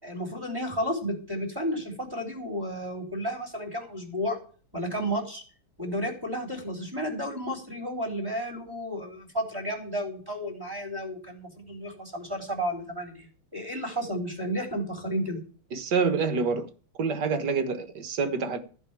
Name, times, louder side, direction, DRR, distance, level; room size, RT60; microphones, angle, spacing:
voice 1, 0.0-4.4 4.7-5.4 5.8-13.3 13.5-15.4, equal, 10° right, 3.5 m, -32 dB
voice 2, 15.7-16.7 17.0-18.6, right 5 dB, 55° right, 1.8 m, -27 dB
14.5 x 5.5 x 8.8 m
omnidirectional pair, 2.3 m